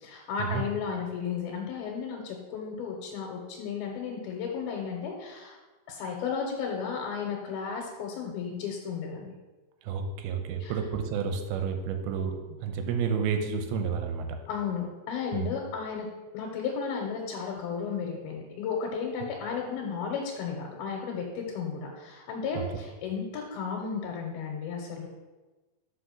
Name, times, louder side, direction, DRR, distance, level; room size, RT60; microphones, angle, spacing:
voice 1, 0.0-5.6 5.9-9.3 10.6-10.7 14.5-16.1 16.3-25.1, left 6 dB, 80° left, 0 dB, 2.8 m, -34 dB
voice 2, 9.8-14.3 15.3-15.5 22.6-22.7, right 6 dB, 90° right, 5 dB, 2.7 m, -30 dB
6.5 x 4.9 x 5.9 m, 1.2 s
omnidirectional pair, 4.4 m